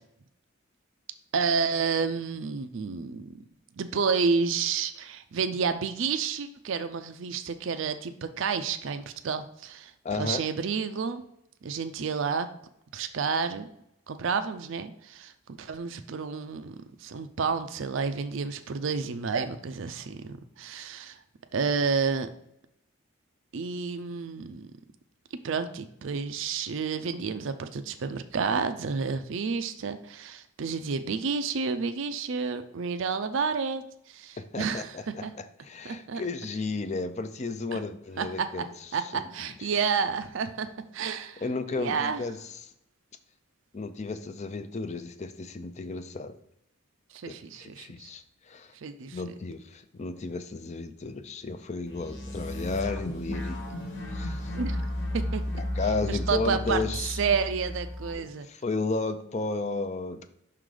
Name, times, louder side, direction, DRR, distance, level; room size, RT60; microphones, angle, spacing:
voice 1, 1.3-3.3 3.8-11.2 11.6-12.5 12.9-13.7 14.1-16.7 17.0-21.2 21.5-22.3 23.5-24.7 25.4-35.0 35.2-35.3 35.8-36.2 37.7-37.8 38.2-38.5 38.9-40.7 40.9-41.4 41.7-42.2 47.1-48.1 48.8-49.2 54.5-54.8 55.1-55.4 56.1-58.5, right 5 dB, 65° right, 9 dB, 0.4 m, -30 dB
voice 2, 10.0-10.4 34.4-35.2 35.6-39.2 39.6-39.7 41.4-42.7 43.7-46.3 47.3-48.7 49.1-53.8 54.1-54.5 55.6-57.2 58.5-60.2, left 3 dB, 35° left, 10 dB, 0.5 m, -33 dB
sound 1, 51.9-58.1, left 1 dB, 60° left, 1.3 m, -33 dB
5.8 x 3.8 x 4.8 m, 0.77 s
head